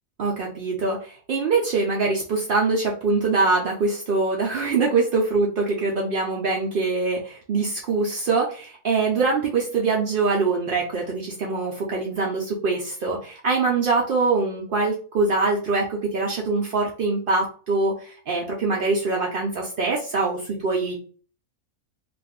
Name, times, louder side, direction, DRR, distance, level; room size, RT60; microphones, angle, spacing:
voice 1, 0.2-21.0, right 3 dB, 75° right, -2 dB, 0.5 m, -23 dB
2.4 x 2.4 x 3.4 m, 0.42 s
omnidirectional pair, 1.5 m